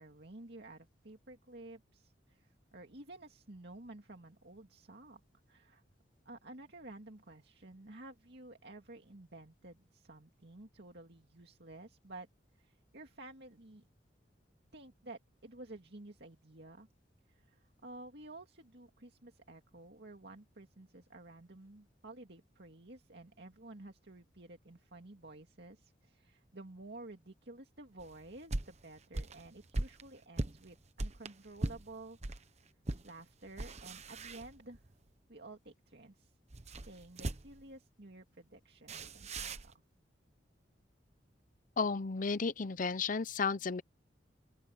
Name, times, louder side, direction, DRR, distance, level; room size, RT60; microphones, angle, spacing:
voice 1, 0.0-5.2 5.5-5.8 6.2-12.3 12.6-13.9 14.7-16.9 17.3-32.2 33.0-34.9 35.3-36.3 36.8-39.7, right 2 dB, 65° right, 2.4 m, -52 dB
sound 1, 28.0-32.4 32.8-33.1 33.5-34.9 36.5-37.7 38.9-39.7, right 2 dB, 40° right, 1.0 m, -40 dB
voice 2, 41.8-43.8, left 4 dB, 45° left, 0.7 m, -33 dB
open air
head